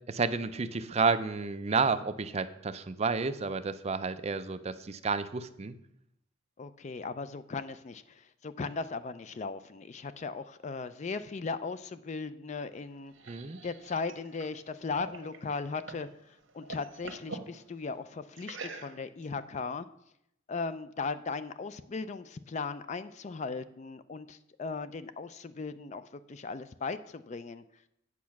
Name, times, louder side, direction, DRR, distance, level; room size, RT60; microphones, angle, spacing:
voice 1, 0.1-5.8 13.3-13.6, right 4 dB, 30° right, 11 dB, 0.5 m, -31 dB
voice 2, 6.6-13.1 13.6-19.9 20.5-27.6, left 4 dB, 35° left, 13 dB, 0.4 m, -37 dB
sound 1, 12.7-16.1 16.4-17.5 18.4-19.2, right 3 dB, 75° right, 1.2 m, -45 dB
8.4 x 7.3 x 5.8 m, 0.78 s
head